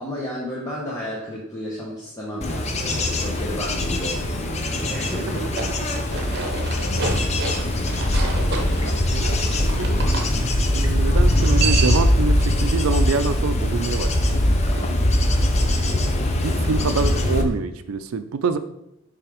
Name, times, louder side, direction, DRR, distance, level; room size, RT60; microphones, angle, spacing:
voice 1, 0.0-5.4 6.2-6.4 7.0-7.3 8.2-8.9, left 1 dB, 15° left, -5 dB, 1.0 m, -33 dB
Bird / Insect / Wind, 2.4-17.4, left 1 dB, 30° left, 0.6 m, -21 dB
sound 1, 5.3-10.3 11.3-12.2, right 4 dB, 50° right, 0.9 m, -30 dB
voice 2, 8.8-10.2 10.7-14.9 16.4-18.6, right 4 dB, 85° right, 10 dB, 0.4 m, -26 dB
5.7 x 3.5 x 5.0 m, 0.81 s
head